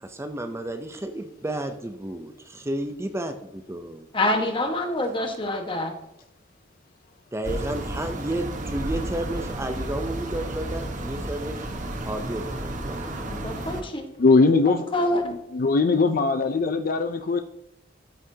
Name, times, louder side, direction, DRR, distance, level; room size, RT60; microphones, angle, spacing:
voice 1, 0.0-4.1 7.3-11.7 12.1-13.1, right 1 dB, 15° right, 7 dB, 0.5 m, -32 dB
voice 2, 4.1-5.9 13.3-14.0 14.7-15.4, left 1 dB, 30° left, 4 dB, 1.3 m, -26 dB
sound 1, 7.4-13.8, right 1 dB, 45° right, 1.1 m, -32 dB
voice 3, 14.2-14.8 15.5-17.4, left 3 dB, 50° left, 8 dB, 0.4 m, -20 dB
13.5 x 5.8 x 2.8 m, 0.82 s
head